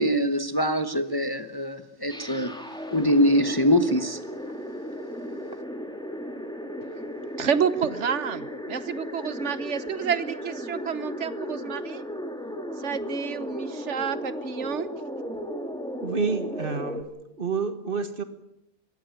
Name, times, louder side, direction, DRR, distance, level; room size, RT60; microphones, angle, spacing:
voice 1, 0.0-2.5 2.9-4.2, equal, 20° left, 9 dB, 1.0 m, -23 dB
sound 1, 2.1-17.0, equal, 5° left, 2.4 m, -35 dB
voice 2, 7.4-12.0 12.8-14.9, right 7 dB, 80° right, 14 dB, 1.4 m, -29 dB
voice 3, 16.0-17.0 17.4-18.2, right 5 dB, 50° right, 10 dB, 1.8 m, -29 dB
22.0 x 16.0 x 8.9 m, 0.82 s
omnidirectional pair, 1.2 m